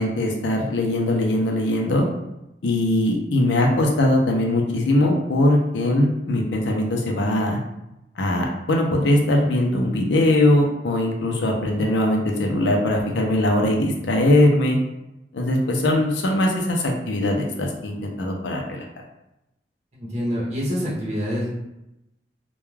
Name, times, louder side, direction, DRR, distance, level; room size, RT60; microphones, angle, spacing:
voice 1, 0.0-2.0 2.6-7.6 8.2-14.8 15.3-18.8, left 1 dB, 90° left, 0 dB, 0.5 m, -21 dB
voice 2, 19.9-21.5, equal, 40° right, -6 dB, 0.7 m, -26 dB
2.3 x 2.2 x 3.1 m, 0.88 s
head